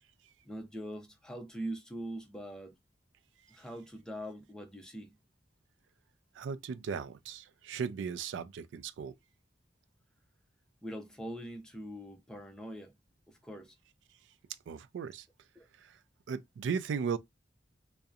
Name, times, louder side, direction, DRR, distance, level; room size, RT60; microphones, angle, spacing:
voice 1, 0.4-2.7 3.5-5.2 10.8-12.9 13.3-13.8 15.6-15.7, right 1 dB, 5° left, 0.5 m, -42 dB
voice 2, 6.3-9.1 14.7-15.3 15.8-16.0 16.3-17.2, right 6 dB, 85° right, 0.3 m, -36 dB
2.7 x 2.0 x 2.3 m
head